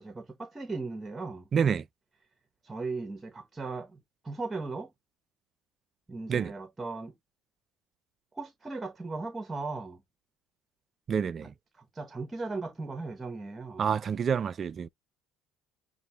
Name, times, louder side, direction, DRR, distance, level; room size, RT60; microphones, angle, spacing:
voice 1, 0.0-1.5 2.6-4.9 6.1-7.1 8.3-10.0 11.8-13.9, right 3 dB, 15° right, 0.9 m, -37 dB
voice 2, 1.5-1.9 6.3-6.5 11.1-11.5 13.8-14.9, right 7 dB, 35° right, 0.3 m, -28 dB
6.9 x 2.5 x 2.9 m
cardioid pair, 135°, 0 cm